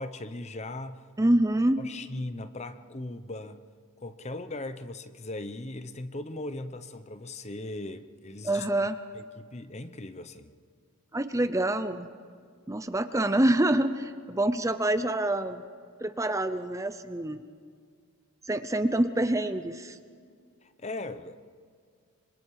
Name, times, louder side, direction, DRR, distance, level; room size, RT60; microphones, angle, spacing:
voice 1, 0.0-1.0 1.8-3.7 4.0-8.7 9.1-10.5 20.6-21.4, left 2 dB, 30° left, 0.8 m, -38 dB
voice 2, 1.2-1.8 8.4-9.0 11.1-12.1 12.7-15.6 16.0-17.4 18.5-20.0, right 1 dB, 15° right, 0.6 m, -26 dB
26.5 x 25.0 x 4.9 m
head